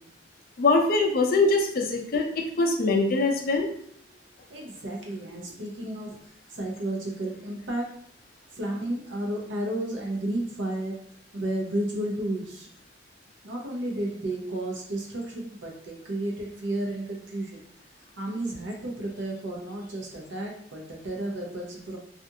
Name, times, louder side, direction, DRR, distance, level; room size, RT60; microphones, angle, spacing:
voice 1, 0.6-2.3 2.6-3.7, left 3 dB, 50° left, 2 dB, 0.5 m, -22 dB
voice 2, 4.5-6.2 6.5-7.9 8.6-10.9 11.3-12.7 13.4-17.6 18.2-22.0, right 1 dB, 85° right, 0 dB, 0.7 m, -32 dB
2.5 x 2.4 x 2.7 m, 0.63 s
head